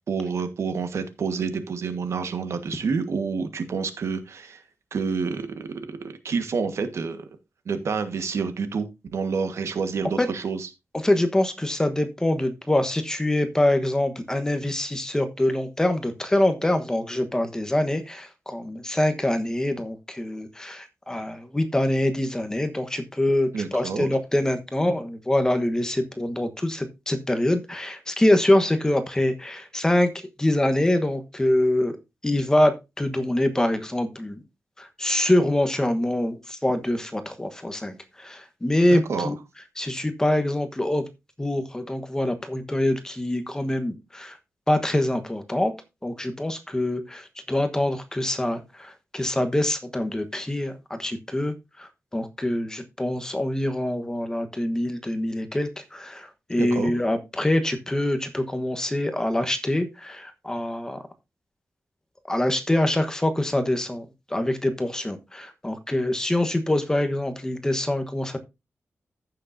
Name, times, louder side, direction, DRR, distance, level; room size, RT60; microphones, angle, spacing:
voice 1, 0.1-4.6 4.9-7.2 7.6-10.7 23.5-24.1 38.9-39.3 56.6-56.9, right 5 dB, 70° right, 1.5 m, -28 dB
voice 2, 11.0-30.1 30.4-32.0 32.2-34.4 34.8-39.3 39.8-41.0 41.4-44.4 44.7-45.7 46.0-61.0 62.3-64.0 64.3-68.4, left 1 dB, 10° left, 1.2 m, -25 dB
15.0 x 6.6 x 2.6 m
wide cardioid pair, 160°, 5 cm